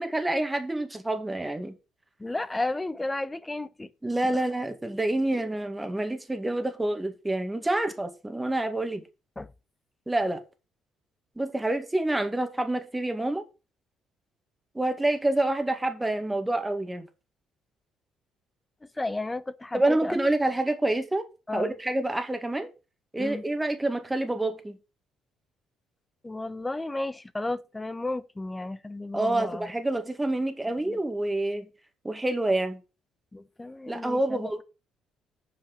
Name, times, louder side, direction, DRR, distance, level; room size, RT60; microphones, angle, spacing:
voice 1, 0.0-1.7 4.0-9.0 10.1-10.4 11.4-13.4 14.7-17.1 19.7-21.3 21.5-22.7 23.1-24.8 29.1-31.7 32.0-32.8 33.9-34.6, right 1 dB, 15° right, 2.1 m, -27 dB
voice 2, 2.2-3.9 4.3-4.4 9.4-9.5 19.0-20.2 21.5-21.8 23.2-23.4 26.2-29.7 30.9-31.0 33.3-34.5, left 2 dB, 15° left, 0.9 m, -33 dB
7.6 x 5.7 x 6.7 m
hypercardioid pair, 50°, 0 cm